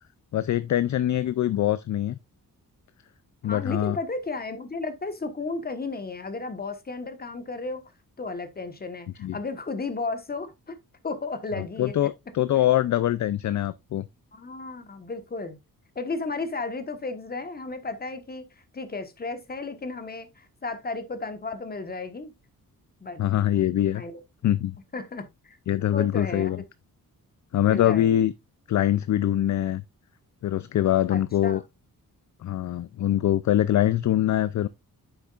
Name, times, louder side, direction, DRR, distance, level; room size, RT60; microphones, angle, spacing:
voice 1, 0.3-2.2 3.4-4.0 9.2-9.4 11.6-14.0 23.2-24.0 24.4-24.7 25.7-26.6 27.5-28.3 28.7-29.8 30.4-31.6 32.4-34.7, left 12 dB, 55° left, 0.4 m, -23 dB
voice 2, 3.4-7.8 8.2-10.8 11.0-12.1 12.5-12.7 14.3-15.6 15.9-18.4 18.7-22.3 23.0-23.5 23.9-24.2 24.9-25.6 25.9-26.6 27.6-28.2 31.1-31.6, left 3 dB, 25° left, 1.3 m, -34 dB
9.4 x 7.2 x 2.4 m
wide cardioid pair, 150°, 35 cm